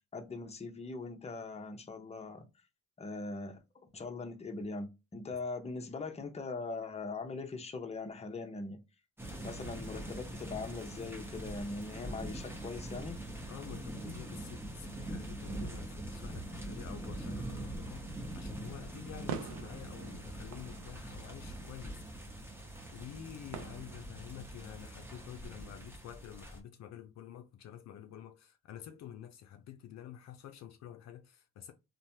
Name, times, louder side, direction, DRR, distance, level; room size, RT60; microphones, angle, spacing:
voice 1, 0.1-2.5 3.0-8.8 9.4-13.2, left 3 dB, 20° left, 0.7 m, -41 dB
sound 1, 9.2-26.6, right 1 dB, 10° right, 0.9 m, -43 dB
voice 2, 13.5-18.1 18.3-22.0 22.9-31.7, left 10 dB, 60° left, 0.5 m, -49 dB
sound 2, 18.0-24.4, right 7 dB, 75° right, 0.5 m, -48 dB
3.1 x 2.1 x 2.7 m
cardioid pair, 90°, 30 cm